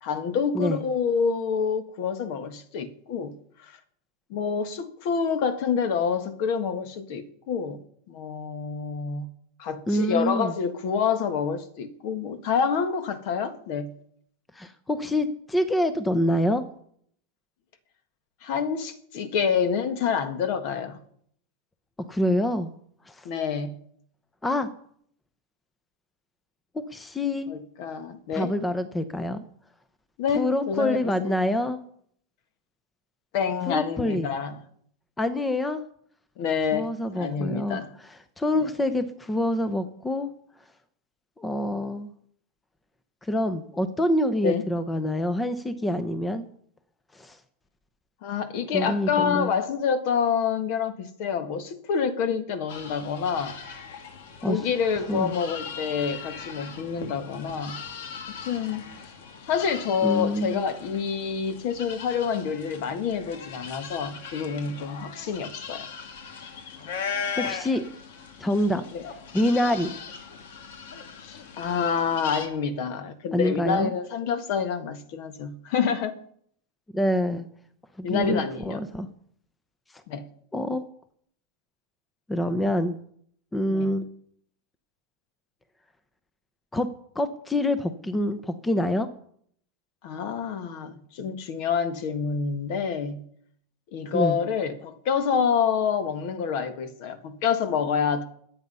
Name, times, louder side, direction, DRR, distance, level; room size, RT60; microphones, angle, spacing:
voice 1, 0.0-3.3 3.6-3.8 4.3-7.8 8.1-9.2 9.6-13.9 18.4-21.0 23.3-23.7 27.5-28.5 30.2-31.4 33.3-34.6 36.4-36.9 37.1-37.9 38.6-38.7 44.4-44.6 48.2-53.6 54.5-57.8 58.4-59.1 59.5-65.9 68.9-69.1 71.2-76.2 78.0-78.8 80.1-80.3 83.7-83.9 90.0-93.2 93.9-98.2, left 6 dB, 55° left, 1.7 m, -27 dB
voice 2, 9.9-10.5 14.5-16.6 22.1-22.7 23.1-23.3 24.4-24.7 26.7-27.5 28.3-29.4 30.3-31.8 33.7-34.3 35.2-35.8 36.7-40.3 41.4-42.1 43.2-46.5 47.1-47.4 48.7-49.5 54.4-54.6 55.1-55.3 60.0-60.6 67.4-67.9 68.4-68.8 69.3-69.9 73.3-73.9 76.9-77.5 78.0-79.1 80.5-80.8 82.3-83.0 83.5-84.0 86.7-86.9 87.1-89.1 94.1-94.4, left 1 dB, 10° left, 0.8 m, -26 dB
sound 1, 52.7-72.5, left 6 dB, 75° left, 2.2 m, -39 dB
21.0 x 8.3 x 5.6 m
supercardioid pair, 150°, 0 cm